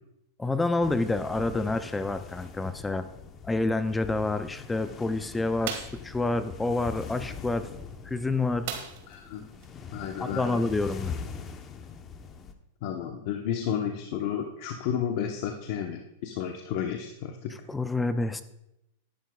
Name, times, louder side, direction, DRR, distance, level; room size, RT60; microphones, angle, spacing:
voice 1, 0.4-3.1 3.4-5.8 6.0-7.7 8.0-8.7 10.2-11.1 17.7-18.4, left 2 dB, 10° left, 11 dB, 0.4 m, -28 dB
sound 1, 0.8-12.5, left 5 dB, 25° left, 0.9 m, -42 dB
sound 2, 5.6-6.1 8.7-9.2 9.6-9.7 10.1-10.3, right 8 dB, 60° right, 1.8 m, -36 dB
voice 2, 9.1-9.5 9.9-10.6 12.8-17.5, left 8 dB, 50° left, 3 dB, 0.9 m, -32 dB
13.0 x 11.5 x 2.3 m, 0.86 s
supercardioid pair, 150°, 0 cm